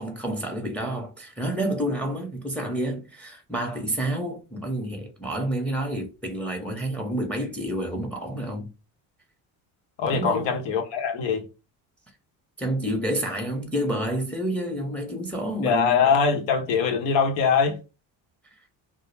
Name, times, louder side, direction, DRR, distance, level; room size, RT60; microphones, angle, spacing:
voice 1, 0.0-8.7 10.1-10.6 12.6-16.1, right 1 dB, 5° left, 0.6 m, -29 dB
voice 2, 10.0-11.5 15.6-17.8, left 6 dB, 80° left, 0.8 m, -22 dB
2.2 x 2.0 x 3.1 m
supercardioid pair, 80°, 45 cm